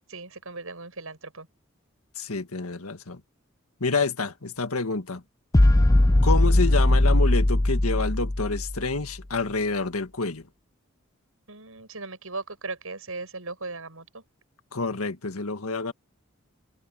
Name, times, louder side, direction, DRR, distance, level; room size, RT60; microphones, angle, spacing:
voice 1, 0.0-1.5 11.5-14.2, right 3 dB, 75° right, 6.5 m, -38 dB
voice 2, 2.2-3.2 3.8-5.2 6.2-10.4 14.7-15.9, left 3 dB, 85° left, 1.7 m, -28 dB
sound 1, 5.5-9.0, left 1 dB, 15° left, 0.5 m, -19 dB
head